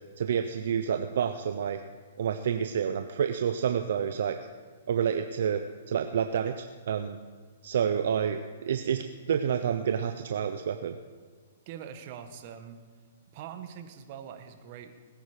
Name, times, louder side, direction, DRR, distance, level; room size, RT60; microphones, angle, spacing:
voice 1, 0.2-1.8 2.2-4.4 4.9-7.2 7.6-11.0, right 8 dB, 65° right, 7 dB, 0.7 m, -29 dB
voice 2, 11.7-12.8 13.3-14.9, right 8 dB, 45° right, 7 dB, 1.5 m, -43 dB
20.5 x 9.5 x 5.1 m, 1.5 s
hypercardioid pair, 140°, 0 cm